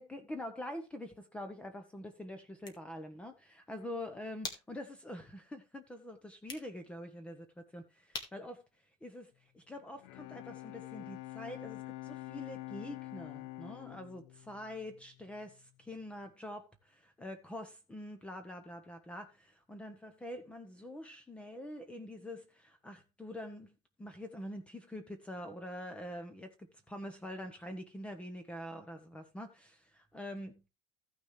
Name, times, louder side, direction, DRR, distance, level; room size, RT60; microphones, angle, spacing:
voice 1, 0.0-8.6 9.0-30.6, left 1 dB, 10° left, 1.1 m, -45 dB
sound 1, 2.4-9.8, left 3 dB, 30° left, 2.0 m, -51 dB
Bowed string instrument, 9.8-15.6, left 19 dB, 75° left, 0.5 m, -47 dB
15.0 x 6.2 x 3.2 m
cardioid pair, 150°, 13 cm